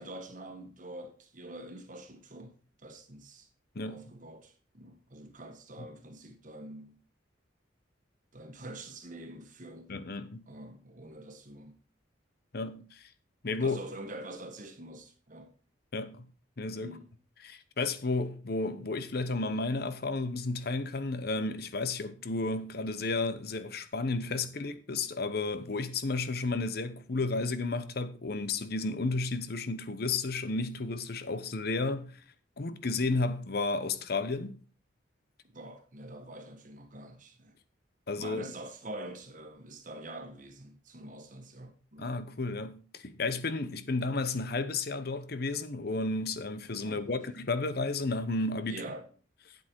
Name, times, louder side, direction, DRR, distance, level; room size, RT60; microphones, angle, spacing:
voice 1, 0.0-3.5 3.9-7.0 8.3-9.9 10.5-11.8 13.6-15.5 16.8-17.1 35.5-37.6 38.2-42.2 46.8-47.1 48.7-49.1, right 1 dB, 45° right, 1.5 m, -45 dB
voice 2, 9.9-10.5 12.5-13.1 13.4-13.8 15.9-16.3 16.6-17.0 17.4-32.2 32.6-34.6 38.1-38.5 42.0-48.8, left 3 dB, 55° left, 0.8 m, -32 dB
8.8 x 8.0 x 4.5 m
head